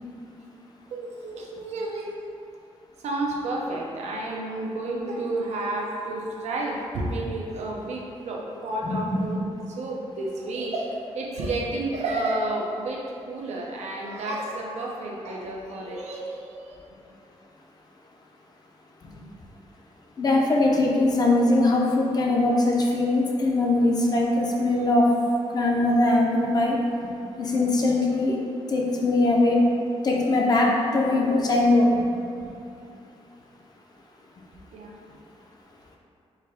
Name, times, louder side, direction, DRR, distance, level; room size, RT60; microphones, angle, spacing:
voice 1, 0.9-2.2 3.0-9.4 9.7-16.8 34.7-35.0, right 2 dB, 90° right, -2 dB, 0.7 m, -31 dB
voice 2, 8.8-9.2 19.0-19.1 20.2-25.2 25.5-27.1 27.4-28.4 28.7-29.7 30.0-31.9 32.4-32.5, left 2 dB, 35° left, -2 dB, 0.6 m, -21 dB
4.4 x 2.4 x 4.8 m, 2.6 s
wide cardioid pair, 165°, 11 cm